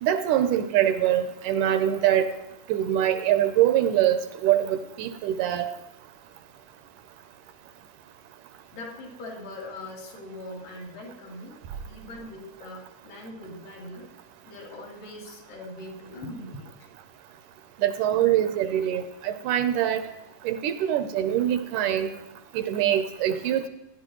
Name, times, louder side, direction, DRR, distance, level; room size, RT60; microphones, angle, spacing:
voice 1, 0.0-2.3 2.7-5.7 17.8-20.0 20.5-22.1 22.5-23.7, right 11 dB, 80° right, 9 dB, 2.1 m, -24 dB
voice 2, 8.7-11.6 11.9-14.1 14.5-16.7, left 1 dB, 80° left, -3 dB, 4.1 m, -41 dB
15.5 x 10.5 x 3.0 m, 0.92 s
omnidirectional pair, 3.8 m